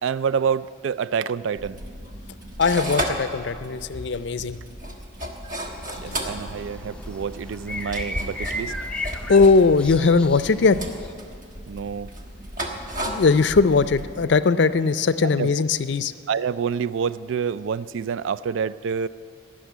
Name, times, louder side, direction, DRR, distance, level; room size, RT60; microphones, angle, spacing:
voice 1, 0.0-1.8 6.0-8.7 11.7-12.1 15.4-15.5 16.3-19.1, right 6 dB, 75° right, 17 dB, 0.3 m, -27 dB
sound 1, 1.6-14.3, equal, 40° right, 1.3 m, -34 dB
voice 2, 2.6-4.6 6.0-6.2 9.3-10.8 13.0-16.1, left 4 dB, 60° left, 13 dB, 0.4 m, -19 dB
sound 2, 5.6-11.1, left 1 dB, 5° left, 0.5 m, -36 dB
17.5 x 6.3 x 9.2 m, 2.2 s
head